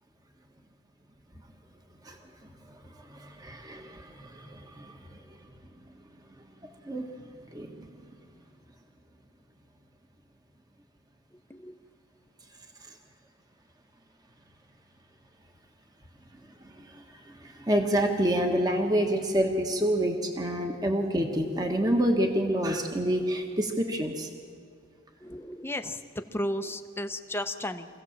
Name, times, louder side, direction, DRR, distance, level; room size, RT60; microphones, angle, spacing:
voice 1, 2.7-5.2 6.6-7.9 16.6-24.3, equal, 20° right, 3 dB, 1.4 m, -28 dB
voice 2, 25.2-27.9, left 1 dB, 10° left, 7 dB, 0.8 m, -34 dB
25.5 x 16.5 x 7.3 m, 2.1 s
head